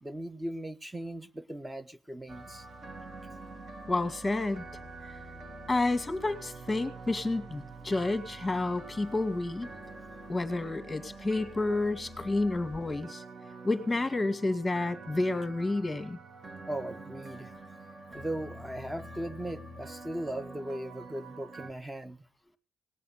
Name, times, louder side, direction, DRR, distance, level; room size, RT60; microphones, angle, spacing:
voice 1, 0.0-2.7 5.4-5.5 16.7-17.5 18.1-22.2, right 1 dB, 10° right, 1.0 m, -38 dB
sound 1, 2.3-21.7, right 2 dB, 45° right, 2.9 m, -46 dB
voice 2, 3.9-4.6 5.7-9.7 10.3-13.2 13.6-16.2, left 2 dB, 10° left, 2.2 m, -30 dB
19.0 x 7.8 x 8.2 m
cardioid pair, 90°, 0 cm